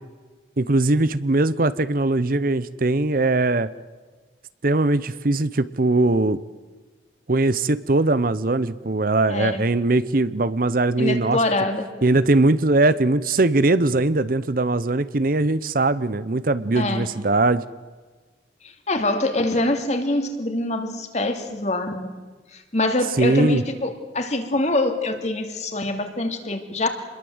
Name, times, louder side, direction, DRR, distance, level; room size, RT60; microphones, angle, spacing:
voice 1, 0.6-3.7 4.6-6.4 7.3-11.4 12.0-17.6 23.2-23.6, right 2 dB, 50° right, 15 dB, 0.8 m, -20 dB
voice 2, 9.3-9.6 11.0-11.8 16.7-17.1 18.9-22.1 22.5-26.9, left 2 dB, 40° left, 5 dB, 2.8 m, -24 dB
27.5 x 21.5 x 8.0 m, 1.3 s
head